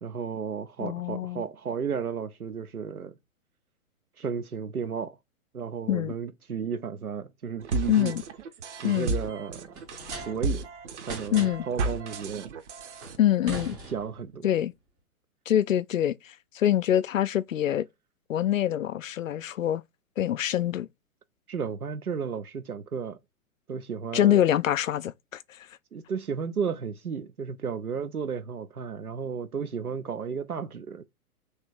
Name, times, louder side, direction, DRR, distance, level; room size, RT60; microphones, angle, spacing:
voice 1, 0.0-3.1 4.2-5.2 5.5-8.1 8.8-9.7 10.2-10.7 11.1-12.5 13.9-14.5 21.5-23.2 23.7-24.5 25.9-31.0, right 6 dB, 85° right, 0.6 m, -33 dB
voice 2, 0.8-1.4 5.9-6.1 7.9-8.2 8.8-9.1 11.3-11.7 13.2-13.8 14.4-14.7 15.5-17.9 18.3-19.8 20.2-20.9 24.1-25.7, left 11 dB, 65° left, 0.5 m, -25 dB
sound 1, 7.6-13.2, right 3 dB, 55° right, 0.9 m, -33 dB
sound 2, 9.7-10.7 11.0-11.8 13.0-14.4, right 1 dB, 10° right, 0.5 m, -41 dB
3.3 x 3.2 x 4.6 m
figure-of-eight pair, 115°, 43 cm